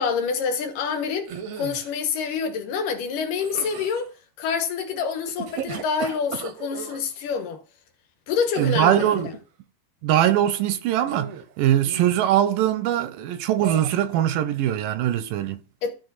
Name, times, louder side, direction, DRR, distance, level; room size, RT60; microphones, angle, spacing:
voice 1, 0.0-4.1 4.4-7.6 8.3-9.1 15.8-15.9, left 6 dB, 75° left, 2.9 m, -27 dB
sound 1, 1.2-1.9 3.4-4.0 5.3-7.0 8.5-9.3 11.0-11.5 11.8-12.2 13.6-14.1, right 8 dB, 70° right, 1.6 m, -35 dB
voice 2, 8.6-9.3 10.0-15.6, right 11 dB, 85° right, 2.3 m, -22 dB
13.0 x 4.7 x 4.0 m
omnidirectional pair, 3.9 m